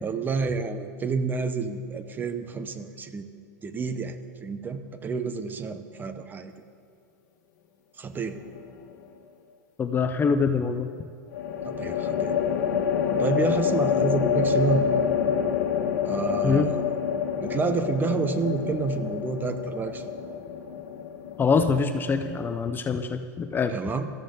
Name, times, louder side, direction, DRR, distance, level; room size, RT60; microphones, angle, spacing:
voice 1, 0.0-3.3 3.6-6.5 8.0-8.4 11.7-12.4 13.2-14.9 16.1-16.9 17.4-20.1 23.7-24.1, right 4 dB, 20° right, 9 dB, 0.9 m, -29 dB
sound 1, 8.2-8.8 11.3-22.7, left 7 dB, 70° left, 1.5 m, -27 dB
voice 2, 9.8-10.9 16.4-16.7 21.4-23.8, left 5 dB, 20° left, 8 dB, 0.6 m, -24 dB
18.0 x 13.5 x 3.9 m, 2.4 s
hypercardioid pair, 115°, 10 cm